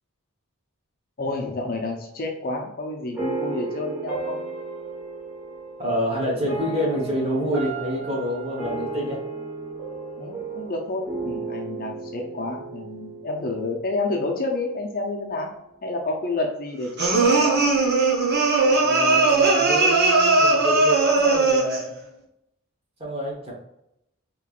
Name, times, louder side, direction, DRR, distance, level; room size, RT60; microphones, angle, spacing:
voice 1, 1.2-4.4 10.2-15.5 15.8-17.6, left 2 dB, 40° left, 1 dB, 0.6 m, -29 dB
sound 1, 3.1-14.3, right 3 dB, 10° right, 1.2 m, -34 dB
voice 2, 5.8-9.2 18.8-21.8 23.0-23.5, equal, 25° right, -3 dB, 1.2 m, -27 dB
sound 2, 17.0-21.9, right 3 dB, 50° right, 0.8 m, -19 dB
4.4 x 3.0 x 2.4 m, 0.80 s
head